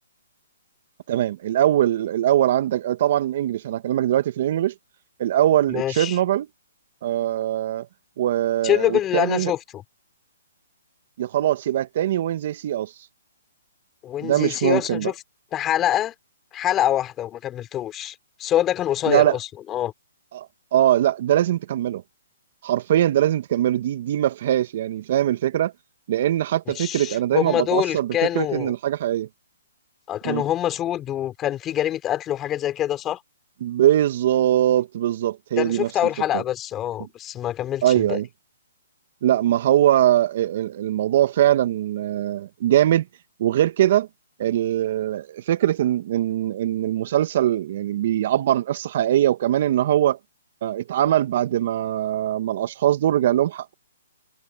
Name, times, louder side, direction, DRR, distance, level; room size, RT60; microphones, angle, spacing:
voice 1, 1.1-4.7 5.2-6.5 7.0-7.9 8.2-9.5 11.2-12.9 14.2-15.1 19.1-19.4 20.3-20.5 20.7-22.0 22.6-25.7 26.1-29.3 30.2-30.4 33.6-35.9 36.3-36.4 37.8-38.3 39.2-43.0 43.4-44.1 44.4-50.2 50.6-53.7, right 12 dB, 50° right, 1.5 m, -21 dB
voice 2, 5.7-6.2 8.6-9.8 14.0-15.1 15.5-16.1 16.5-19.9 26.8-28.7 30.1-33.2 35.6-38.2, left 12 dB, 20° left, 4.2 m, -25 dB
hypercardioid pair, 145°, 0 cm